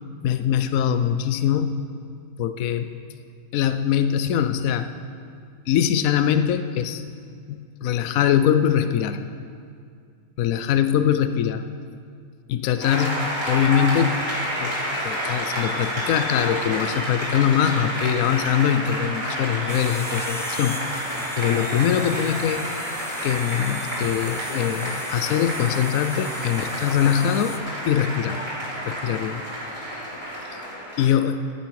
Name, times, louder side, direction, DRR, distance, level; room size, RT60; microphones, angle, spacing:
voice 1, 0.2-1.8 2.4-2.9 3.5-4.9 5.7-7.0 7.5-9.2 10.4-11.6 12.5-13.2 13.4-14.2 14.6-21.0 21.4-22.7 23.2-27.5 27.9-28.4 28.9-29.4 30.4-30.6 31.0-31.4, left 9 dB, 85° left, 10 dB, 1.0 m, -22 dB
Applause, 12.8-31.1, equal, 20° right, 3.7 m, -30 dB
sound 1, 19.7-27.6, equal, 5° left, 0.3 m, -38 dB
14.5 x 8.6 x 4.7 m, 2.3 s
omnidirectional pair, 1.4 m